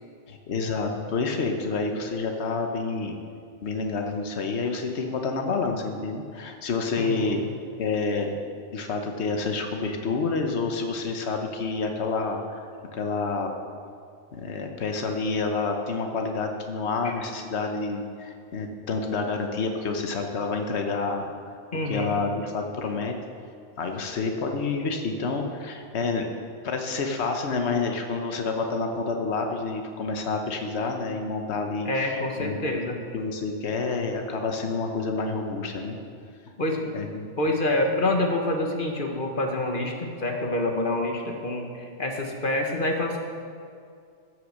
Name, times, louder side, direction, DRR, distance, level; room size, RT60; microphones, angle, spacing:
voice 1, 0.3-3.2 3.6-7.4 7.8-8.3 8.7-12.6 12.9-13.5 14.4-21.2 21.9-23.1 23.8-26.3 26.6-32.6 33.1-36.0 36.9-37.3, left 4 dB, 70° left, 3 dB, 1.3 m, -28 dB
voice 2, 7.0-7.4 17.0-17.1 21.7-22.1 31.8-33.0 36.6-36.9 37.4-43.2, left 1 dB, 50° left, 2 dB, 1.5 m, -27 dB
15.0 x 6.4 x 6.5 m, 2.3 s
omnidirectional pair, 1.2 m